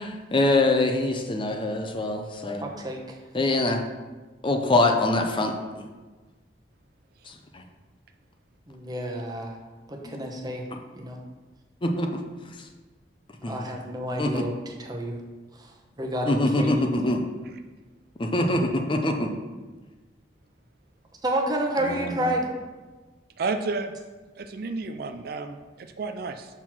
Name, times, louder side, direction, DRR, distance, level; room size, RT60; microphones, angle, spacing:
voice 1, 0.0-2.6 3.3-3.8 4.4-5.8 7.3-7.6 10.0-10.2 10.7-10.8 11.8-12.2 12.6-12.7 13.4-13.8 14.2-14.5 16.3-17.2 18.2-19.3 21.8-22.3, left 2 dB, 30° left, 4 dB, 0.6 m, -24 dB
voice 2, 2.6-3.2 8.7-9.6 9.9-10.6 11.0-11.2 13.5-14.5 14.8-15.2 15.6-15.7 16.0-16.9 21.2-22.5, right 1 dB, 25° right, 1 dB, 1.0 m, -29 dB
voice 3, 23.4-23.9 24.4-26.5, right 3 dB, 60° right, 7 dB, 0.4 m, -31 dB
5.8 x 4.5 x 6.0 m, 1.3 s
head